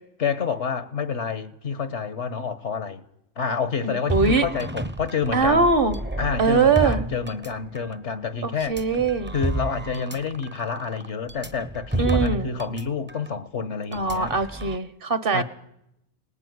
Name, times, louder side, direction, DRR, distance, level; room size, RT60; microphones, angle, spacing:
voice 1, 0.2-3.0 3.4-5.7 6.2-8.8 9.3-14.3 15.3-15.4, left 6 dB, 75° left, 1.7 m, -28 dB
voice 2, 3.8-4.5 5.3-6.0 6.4-7.0 8.4-9.3 12.0-12.5 13.9-15.4, right 4 dB, 50° right, 1.4 m, -22 dB
sound 1, 4.1-8.0 8.6-12.8 13.1-13.3 13.9-14.8, right 2 dB, 10° right, 0.8 m, -31 dB
27.5 x 19.5 x 9.6 m
omnidirectional pair, 1.2 m